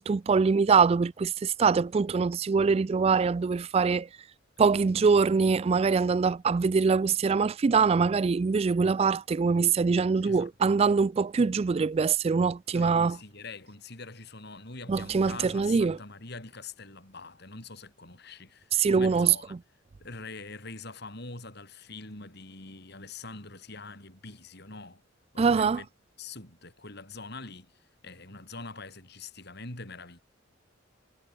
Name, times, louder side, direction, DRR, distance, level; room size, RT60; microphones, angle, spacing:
voice 1, 0.0-4.1 4.6-13.2 14.9-16.0 18.7-19.3 25.4-25.8, right 5 dB, 30° right, 0.3 m, -23 dB
voice 2, 12.7-19.5 20.0-25.0 25.3-25.9 26.2-27.7 28.0-30.2, left 3 dB, 60° left, 7.4 m, -44 dB
head